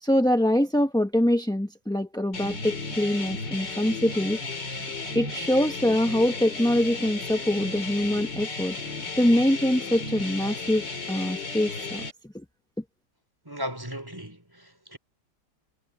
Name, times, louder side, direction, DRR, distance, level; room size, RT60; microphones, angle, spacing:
voice 1, 0.0-4.4 4.8-4.9 5.1-8.8 9.2-12.0 12.3-12.4, left 1 dB, 5° left, 0.6 m, -24 dB
sound 1, 2.3-12.1, left 3 dB, 80° left, 4.1 m, -34 dB
voice 2, 13.4-15.0, equal, 10° right, 3.9 m, -36 dB
omnidirectional pair, 1.9 m